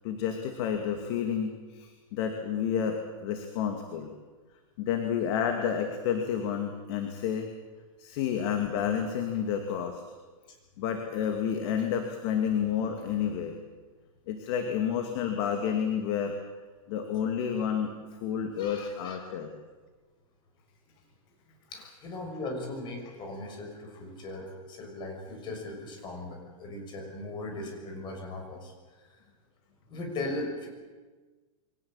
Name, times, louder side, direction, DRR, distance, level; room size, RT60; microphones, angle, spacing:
voice 1, 0.0-4.1 4.8-7.5 8.0-10.0 10.8-13.6 14.3-16.4 16.9-17.9 18.2-19.5, left 8 dB, 50° left, 5 dB, 2.6 m, -30 dB
voice 2, 18.6-19.2 21.7-29.2 29.9-30.7, left 2 dB, 25° left, 3 dB, 6.4 m, -38 dB
24.0 x 17.5 x 8.9 m, 1.3 s
supercardioid pair, 150°, 18 cm